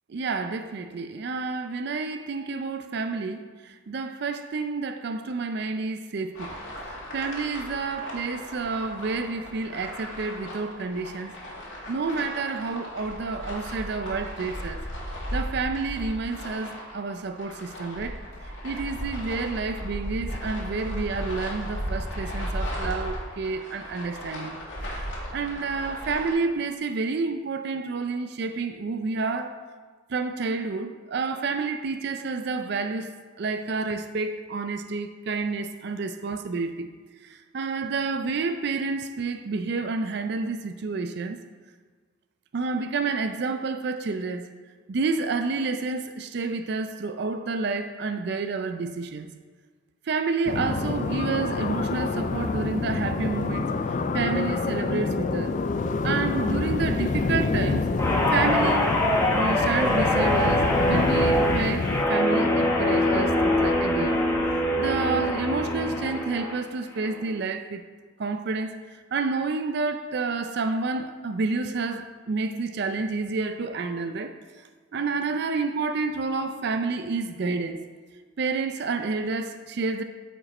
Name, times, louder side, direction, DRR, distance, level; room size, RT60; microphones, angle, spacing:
voice 1, 0.1-6.5 7.1-11.4 11.9-14.8 15.3-18.2 18.6-24.6 25.0-29.6 30.1-36.9 37.2-41.4 42.5-44.5 44.9-49.3 50.1-53.7 54.1-55.5 56.0-57.9 58.3-58.9 59.3-64.2 64.8-67.8 68.2-74.3 74.9-77.8 78.4-80.0, right 4 dB, 60° right, 0.4 m, -29 dB
sound 1, 6.3-26.3, equal, 75° left, 2.0 m, -36 dB
sound 2, 50.5-62.1, left 3 dB, 40° left, 0.3 m, -27 dB
Guitar, 58.0-66.6 67.0-67.3, left 1 dB, 15° left, 1.1 m, -24 dB
9.0 x 5.1 x 4.3 m
head